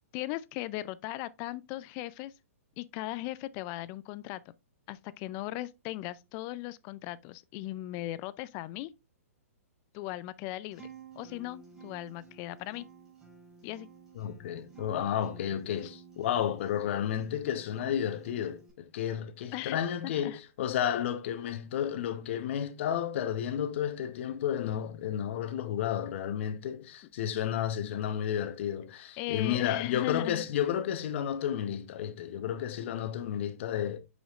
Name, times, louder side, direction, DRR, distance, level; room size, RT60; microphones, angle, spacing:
voice 1, 0.1-2.3 2.8-4.4 4.9-8.9 9.9-10.8 11.2-12.9 13.6-13.9 19.5-19.8 20.0-20.4 27.8-28.0 29.2-30.4, left 16 dB, 30° left, 0.3 m, -38 dB
Acoustic guitar, 10.7-18.7, right 6 dB, 10° right, 4.3 m, -52 dB
voice 2, 14.1-18.6 18.9-34.0, left 9 dB, 50° left, 0.9 m, -32 dB
8.8 x 5.0 x 2.4 m
hypercardioid pair, 145°, 8 cm